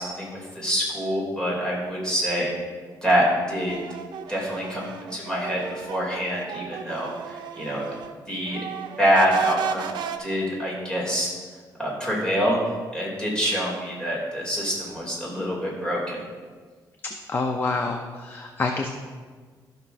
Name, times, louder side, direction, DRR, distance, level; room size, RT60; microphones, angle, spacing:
voice 1, 0.0-2.5 3.0-3.8 4.3-7.8 8.3-8.6 9.0-11.3 11.8-12.6 12.9-16.2, equal, 10° left, -5 dB, 2.6 m, -26 dB
sound 1, 3.5-8.2 8.5-10.2, right 8 dB, 85° right, 0.5 m, -34 dB
voice 2, 17.3-18.9, left 3 dB, 30° left, 3 dB, 0.6 m, -27 dB
14.5 x 5.9 x 2.6 m, 1.5 s
cardioid pair, 145°, 8 cm